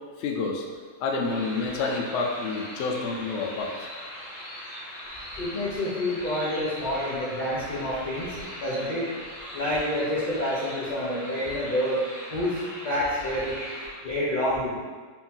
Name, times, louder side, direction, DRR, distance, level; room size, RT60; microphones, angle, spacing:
voice 1, 0.2-0.6 1.0-3.9, left 4 dB, 90° left, 1 dB, 0.6 m, -28 dB
sound 1, 1.2-13.9, equal, 70° left, 2.0 m, -40 dB
voice 2, 5.4-9.1 9.5-12.0 12.3-13.6 14.0-14.7, left 1 dB, 50° left, -9 dB, 0.5 m, -28 dB
4.3 x 2.8 x 3.6 m, 1.5 s
omnidirectional pair, 1.9 m